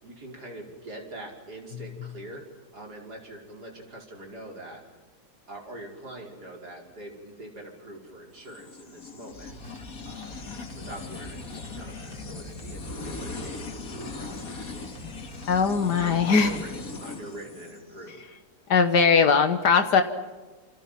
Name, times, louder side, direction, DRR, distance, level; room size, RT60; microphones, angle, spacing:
voice 1, 0.0-2.5 2.7-4.9 5.5-9.5 10.0-10.5 10.8-14.9 15.4-18.4, right 1 dB, 80° right, 0 dB, 5.8 m, -43 dB
sound 1, 8.5-18.2, left 3 dB, 60° left, 2.5 m, -39 dB
sound 2, 9.3-16.8, right 1 dB, 30° right, 5.1 m, -48 dB
voice 2, 15.5-16.6 18.7-20.0, left 5 dB, 85° left, 7 dB, 2.0 m, -20 dB
28.5 x 28.0 x 5.9 m, 1.3 s
omnidirectional pair, 1.7 m